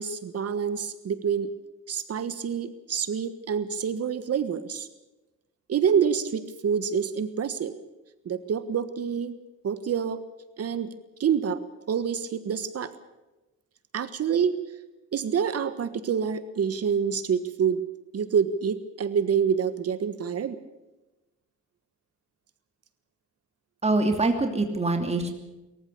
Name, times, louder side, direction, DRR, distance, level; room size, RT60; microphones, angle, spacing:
voice 1, 0.0-1.5 1.9-4.9 5.7-7.7 8.2-9.4 9.6-10.2 10.6-10.9 11.2-11.6 11.9-12.9 13.9-14.6 15.1-17.8 18.1-20.6, right 7 dB, 55° right, 12 dB, 1.4 m, -27 dB
voice 2, 23.8-25.3, right 2 dB, 20° right, 5 dB, 2.8 m, -24 dB
23.5 x 14.5 x 8.3 m, 1.1 s
cardioid pair, 90°, 30 cm